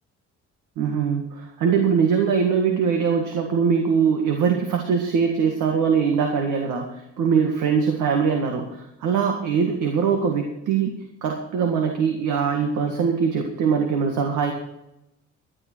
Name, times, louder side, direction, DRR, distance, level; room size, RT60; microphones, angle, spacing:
voice 1, 0.8-6.9 7.2-10.9 11.2-14.5, right 6 dB, 85° right, 3 dB, 1.9 m, -22 dB
16.0 x 11.0 x 4.6 m, 0.88 s
cardioid pair, 90°, 30 cm